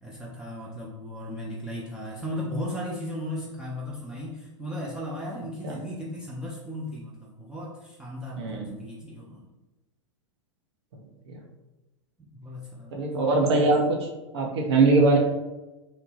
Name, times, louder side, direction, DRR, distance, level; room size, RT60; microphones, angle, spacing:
voice 1, 0.0-9.5 12.2-13.1, left 1 dB, 5° right, -6 dB, 0.4 m, -36 dB
voice 2, 8.4-8.7 11.3-11.4 12.9-14.1 14.3-15.2, right 3 dB, 55° right, 0 dB, 0.7 m, -22 dB
2.8 x 2.1 x 3.1 m, 1.1 s
figure-of-eight pair, 95°, 16 cm